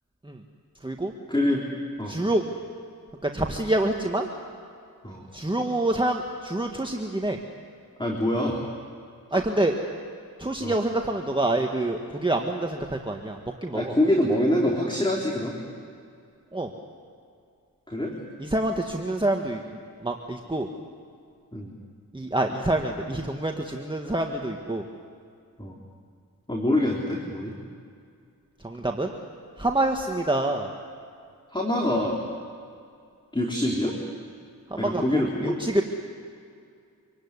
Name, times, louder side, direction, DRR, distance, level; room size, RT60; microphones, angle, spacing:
voice 1, 1.3-1.7 2.0-2.2 5.0-5.2 8.0-8.6 9.3-9.4 10.6-10.8 13.7-15.6 17.9-18.1 21.5-21.7 25.6-25.8 26.5-27.5 31.5-32.2 33.3-34.0 34.8-35.6, left 1 dB, 15° left, -1 dB, 3.6 m, -25 dB
voice 2, 2.1-2.4 3.2-4.3 5.3-7.4 9.3-9.7 10.4-13.9 16.5-16.7 18.4-19.6 20.0-20.7 22.1-24.8 28.6-29.1 29.6-30.7 34.7-35.8, right 1 dB, 15° right, 2 dB, 1.8 m, -26 dB
26.5 x 17.0 x 9.8 m, 2.3 s
cardioid pair, 50°, 34 cm